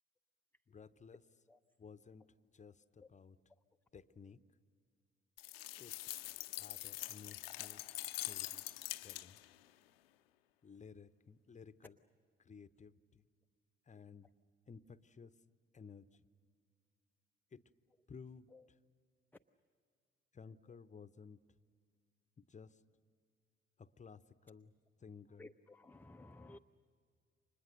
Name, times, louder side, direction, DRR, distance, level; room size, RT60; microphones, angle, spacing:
voice 1, 0.7-1.2 1.8-2.3 2.5-3.4 3.9-4.4 5.8-5.9 6.5-7.8 8.2-8.6 9.0-9.4 10.6-12.0 12.4-13.2 13.9-14.3 14.7-15.3 15.7-16.1 17.5-17.6 18.1-18.5 20.3-21.4 22.4-22.8 23.8-24.7 25.0-25.5, left 5 dB, 25° left, 15 dB, 0.9 m, -55 dB
sound 1, 5.4-9.6, left 16 dB, 80° left, 0.6 m, -44 dB
voice 2, 25.4-26.6, left 2 dB, 5° left, 7 dB, 0.6 m, -55 dB
30.0 x 25.5 x 6.6 m, 2.1 s
figure-of-eight pair, 45°, 29 cm